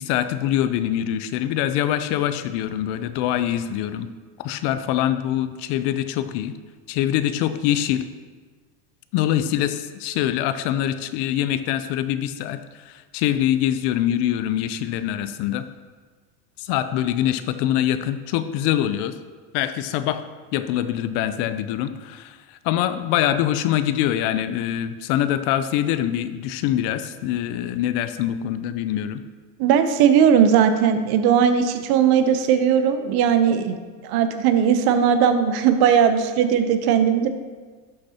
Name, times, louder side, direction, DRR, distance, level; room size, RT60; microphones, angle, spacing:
voice 1, 0.0-4.1 4.4-6.5 6.9-8.1 9.1-12.6 12.9-15.7 16.6-19.2 19.5-20.2 20.5-22.4 22.6-29.2, left 11 dB, 60° left, 11 dB, 0.6 m, -24 dB
voice 2, 29.6-33.8 34.0-37.3, right 8 dB, 50° right, 9 dB, 0.9 m, -18 dB
11.5 x 6.4 x 2.9 m, 1.5 s
supercardioid pair, 110°, 47 cm